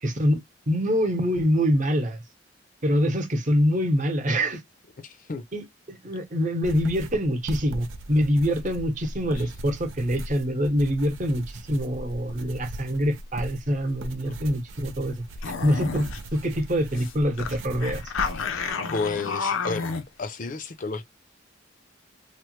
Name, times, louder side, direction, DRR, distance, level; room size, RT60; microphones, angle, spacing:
voice 1, 0.0-2.2 2.8-4.6 5.5-15.2 15.6-18.0, equal, 40° right, 0.9 m, -25 dB
voice 2, 5.0-5.4 18.9-19.9 20.2-21.0, left 4 dB, 40° left, 0.5 m, -31 dB
sound 1, 6.6-18.7, right 1 dB, 75° right, 0.5 m, -39 dB
sound 2, 15.4-16.2 16.5-16.6 16.9-17.1 17.4-20.0, left 5 dB, 85° left, 0.6 m, -30 dB
3.2 x 2.1 x 3.0 m
head